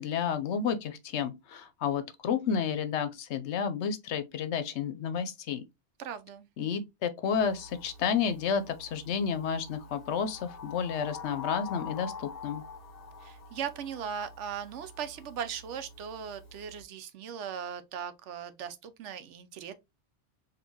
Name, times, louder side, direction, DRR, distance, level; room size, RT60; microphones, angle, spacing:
voice 1, 0.0-5.6 6.6-12.6, left 7 dB, 70° left, 0.8 m, -31 dB
voice 2, 6.0-6.5 13.2-19.7, right 8 dB, 75° right, 0.9 m, -38 dB
sound 1, 7.3-16.8, left 5 dB, 35° left, 1.2 m, -46 dB
4.4 x 2.6 x 2.7 m
omnidirectional pair, 1.3 m